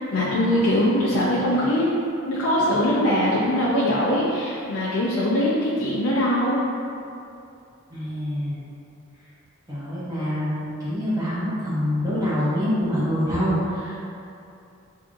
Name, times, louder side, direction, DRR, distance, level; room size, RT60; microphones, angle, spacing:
voice 1, 0.1-2.0 2.2-6.6, left 1 dB, 85° left, -7 dB, 0.5 m, -22 dB
voice 2, 7.9-8.6 9.7-14.0, equal, 15° right, -10 dB, 0.7 m, -25 dB
4.6 x 2.6 x 2.5 m, 2.6 s
head